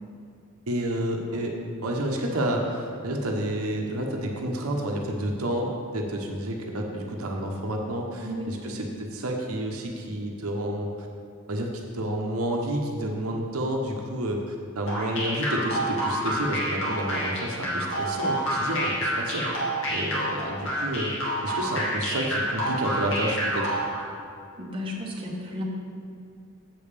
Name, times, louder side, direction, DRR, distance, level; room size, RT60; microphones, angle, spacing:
voice 1, 0.7-1.6 1.8-10.9 11.5-19.5 19.9-21.1 21.4-23.7, right 1 dB, 85° right, 1 dB, 1.0 m, -30 dB
voice 2, 8.2-8.7 24.6-25.6, left 1 dB, 25° right, -2 dB, 1.3 m, -34 dB
sound 1, 14.9-24.0, equal, 65° left, 2.2 m, -28 dB
7.7 x 5.4 x 6.7 m, 2.3 s
head